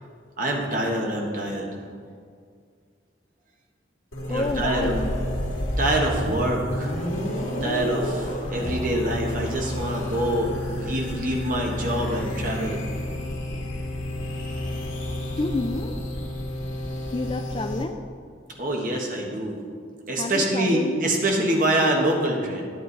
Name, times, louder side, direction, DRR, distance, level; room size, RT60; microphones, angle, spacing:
voice 1, 0.4-1.7 4.3-4.9 5.8-6.9 7.6-12.8 18.6-19.6 20.1-22.6, right 1 dB, 45° right, 0 dB, 1.4 m, -25 dB
sound 1, 4.1-17.8, left 1 dB, 85° left, 1.9 m, -30 dB
voice 2, 4.3-5.1 15.4-16.0 17.1-18.1 20.2-21.0, left 3 dB, 25° left, 7 dB, 0.3 m, -29 dB
10.5 x 8.7 x 4.0 m, 2.1 s
head